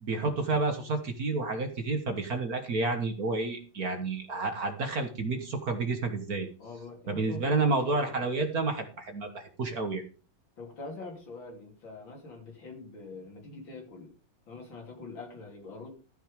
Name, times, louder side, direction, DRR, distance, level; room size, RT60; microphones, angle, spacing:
voice 1, 0.0-6.5 7.1-10.0, right 3 dB, 50° right, 6 dB, 1.6 m, -30 dB
voice 2, 6.6-8.3 10.6-14.1 14.5-15.9, left 2 dB, 60° left, 2 dB, 3.6 m, -44 dB
13.5 x 6.4 x 5.0 m, 0.37 s
omnidirectional pair, 2.3 m